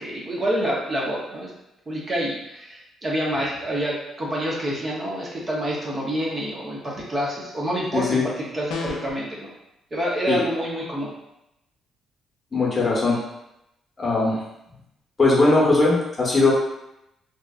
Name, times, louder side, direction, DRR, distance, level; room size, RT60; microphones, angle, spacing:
voice 1, 0.0-1.5 1.9-9.5 9.9-11.1, equal, 30° right, -4 dB, 0.7 m, -27 dB
sound 1, 8.7-9.2, left 4 dB, 85° left, 0.4 m, -31 dB
voice 2, 12.5-13.2 14.0-14.4 15.2-16.5, left 3 dB, 30° left, -5 dB, 0.9 m, -19 dB
2.8 x 2.3 x 2.4 m, 0.87 s
cardioid pair, 90°, 0 cm